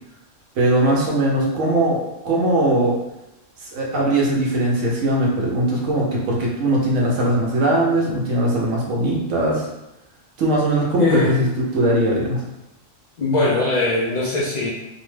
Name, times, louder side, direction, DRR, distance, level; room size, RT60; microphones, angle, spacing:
voice 1, 0.6-3.0 3.6-9.7 10.4-12.4, right 1 dB, 75° right, -3 dB, 0.9 m, -20 dB
voice 2, 11.0-11.4 13.2-14.7, left 2 dB, 75° left, -7 dB, 0.4 m, -20 dB
2.7 x 2.1 x 3.1 m, 0.93 s
omnidirectional pair, 1.3 m